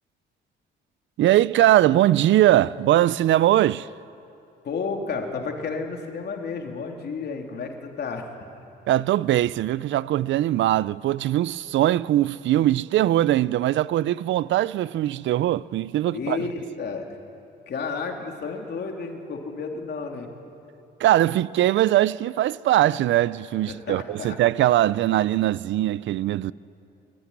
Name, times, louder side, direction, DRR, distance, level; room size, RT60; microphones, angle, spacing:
voice 1, 1.2-3.9 8.9-16.4 21.0-26.5, right 13 dB, 70° right, 0.5 m, -21 dB
voice 2, 4.6-8.3 16.1-17.1 17.7-20.3 23.7-24.4, left 4 dB, 55° left, 3.2 m, -31 dB
23.5 x 16.0 x 9.9 m
cardioid pair, 90°, 20 cm